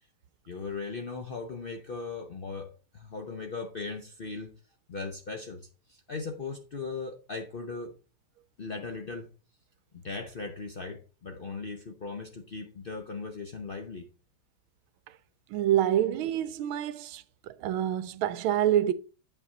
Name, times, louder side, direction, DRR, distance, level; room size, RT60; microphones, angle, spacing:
voice 1, 0.5-4.5 4.9-7.9 8.6-9.3 9.9-14.1, left 4 dB, 65° left, 0.5 m, -38 dB
voice 2, 15.5-18.9, right 11 dB, 85° right, 1.5 m, -27 dB
8.7 x 5.9 x 3.9 m
omnidirectional pair, 2.2 m